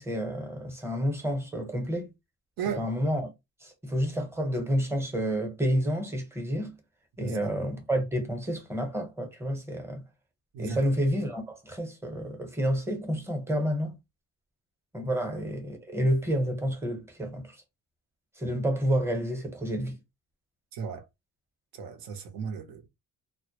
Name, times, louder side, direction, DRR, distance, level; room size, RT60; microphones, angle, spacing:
voice 1, 0.0-2.1 2.8-3.3 3.6-6.7 7.2-10.0 10.6-13.9 14.9-17.6 18.4-20.0, equal, 5° right, 0.7 m, -29 dB
voice 2, 7.2-7.5 10.5-10.8 15.0-15.1 20.7-21.1 21.7-22.9, right 6 dB, 75° right, 0.7 m, -35 dB
2.1 x 2.0 x 2.8 m
cardioid pair, 120°, 36 cm